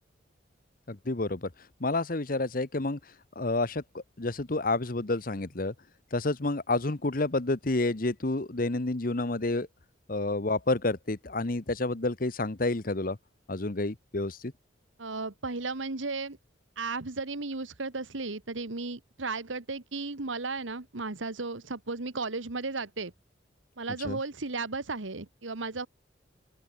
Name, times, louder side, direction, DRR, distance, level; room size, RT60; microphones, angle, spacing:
voice 1, 0.9-1.5 1.8-3.0 3.4-5.7 6.1-9.7 10.1-13.2 13.5-14.5 24.0-24.2, left 2 dB, 45° left, 1.1 m, -29 dB
voice 2, 15.0-16.4 16.8-23.1 23.8-25.9, right 3 dB, 90° right, 1.6 m, -35 dB
open air
head